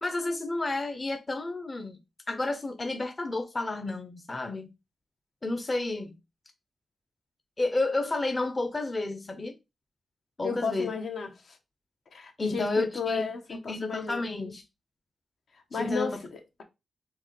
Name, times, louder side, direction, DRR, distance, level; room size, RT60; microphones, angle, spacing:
voice 1, 0.0-2.0 2.3-4.7 5.4-6.2 7.6-9.6 10.4-10.9 12.4-13.2 13.5-14.6 15.7-16.2, left 2 dB, 30° left, 0.6 m, -31 dB
voice 2, 10.4-11.6 12.1-14.3 15.7-16.6, left 4 dB, 70° left, 1.0 m, -34 dB
4.5 x 3.3 x 3.1 m
cardioid pair, 90°, 0 cm